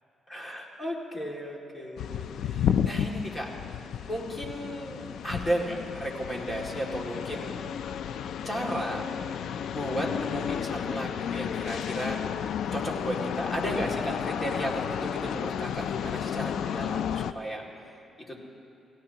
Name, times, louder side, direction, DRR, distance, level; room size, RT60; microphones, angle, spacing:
voice 1, 0.3-3.5 4.0-7.6 8.4-9.1 9.6-12.2 12.7-17.6 18.3-18.4, equal, 15° left, -2 dB, 2.2 m, -34 dB
sound 1, 2.0-17.3, left 8 dB, 70° left, 0.4 m, -32 dB
28.5 x 17.0 x 2.9 m, 2.9 s
cardioid pair, 135°, 0 cm